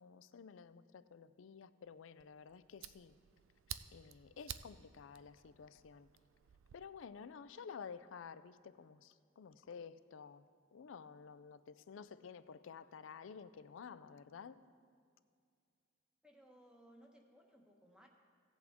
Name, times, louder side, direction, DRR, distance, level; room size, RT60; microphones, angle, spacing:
voice 1, 0.0-3.2 3.9-6.1 6.7-10.5 10.7-14.6, left 6 dB, 75° left, 14 dB, 0.4 m, -52 dB
Fire, 2.2-6.8, right 10 dB, 80° right, 0.4 m, -52 dB
voice 2, 16.2-18.1, equal, 5° right, 1 dB, 1.1 m, -62 dB
16.5 x 8.1 x 3.6 m, 2.2 s
head